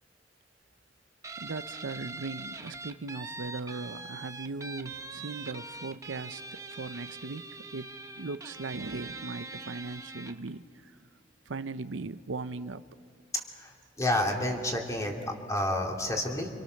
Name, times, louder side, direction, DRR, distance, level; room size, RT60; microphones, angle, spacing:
Guitar, 1.2-10.5, right 3 dB, 15° right, 0.9 m, -43 dB
voice 1, 1.4-6.4 6.7-7.5 7.7-7.9 8.2-10.6 11.5-12.8, right 3 dB, 90° right, 12 dB, 0.7 m, -38 dB
voice 2, 13.6-16.5, left 1 dB, 15° left, 1 dB, 2.9 m, -30 dB
29.0 x 26.0 x 6.5 m, 2.2 s
head